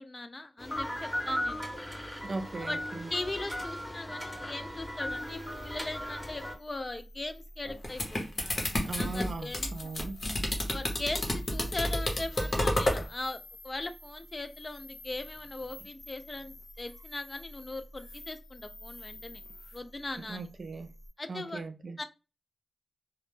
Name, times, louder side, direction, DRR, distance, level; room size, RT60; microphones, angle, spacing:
voice 1, 0.0-1.6 2.2-2.8 3.1-9.7 10.7-19.4 19.7-20.5 21.2-21.6 22.0-22.1, left 2 dB, 35° left, 0.3 m, -39 dB
sound 1, 0.6-6.5, equal, 5° left, 0.7 m, -37 dB
voice 2, 2.2-3.1 8.8-10.2 20.3-20.9 21.3-22.0, right 3 dB, 65° right, 0.3 m, -38 dB
sound 2, 5.2-21.1, left 1 dB, 85° left, 0.8 m, -50 dB
sound 3, 7.6-13.0, left 1 dB, 55° left, 0.7 m, -30 dB
2.1 x 2.0 x 3.1 m
wide cardioid pair, 80°, 0 cm